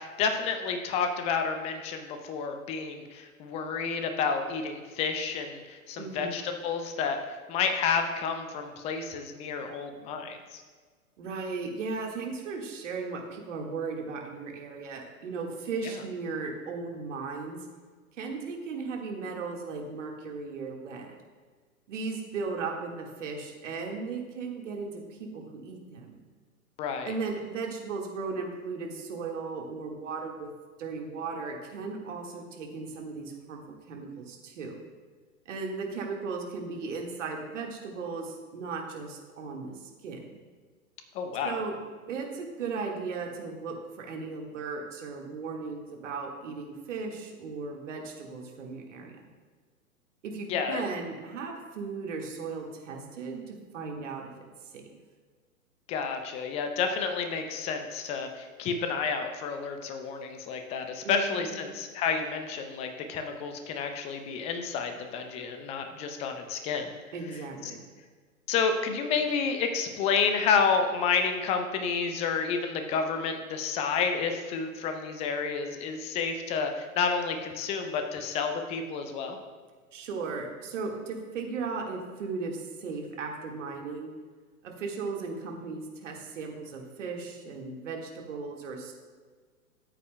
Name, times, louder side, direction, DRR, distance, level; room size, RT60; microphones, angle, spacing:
voice 1, 0.0-10.6 26.8-27.1 41.1-41.6 50.5-50.8 55.9-66.9 67.6-67.7 68.5-79.4, left 5 dB, 15° left, 6 dB, 0.5 m, -30 dB
voice 2, 6.0-6.5 11.2-17.6 18.2-21.2 21.9-26.2 27.0-30.5 30.8-33.6 33.9-34.8 35.4-40.4 41.4-41.7 42.1-49.2 50.2-54.3 54.7-54.8 61.0-61.7 67.1-67.8 79.9-84.1 84.6-88.9, right 4 dB, 55° right, 1 dB, 1.8 m, -36 dB
13.5 x 8.2 x 2.2 m, 1.5 s
figure-of-eight pair, 110°, 43 cm